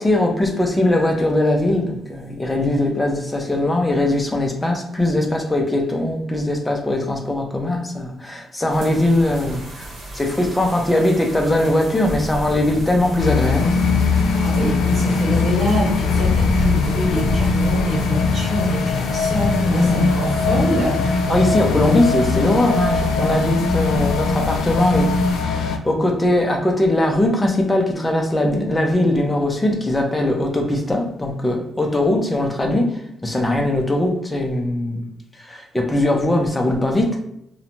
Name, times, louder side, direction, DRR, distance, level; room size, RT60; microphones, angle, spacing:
voice 1, 0.0-13.8 19.7-20.1 20.8-20.9 21.3-25.1 25.4-35.1 35.3-37.2, left 1 dB, 10° left, 2 dB, 0.4 m, -20 dB
sound 1, 8.7-25.4, right 1 dB, 50° right, 1.0 m, -32 dB
sound 2, 13.2-25.8, left 4 dB, 80° left, 0.3 m, -21 dB
voice 2, 14.4-21.2, left 1 dB, 30° right, -5 dB, 1.1 m, -24 dB
sound 3, 16.1-22.5, left 2 dB, 85° right, 0.5 m, -34 dB
2.5 x 2.1 x 2.9 m, 0.76 s
cardioid pair, 165°, 0 cm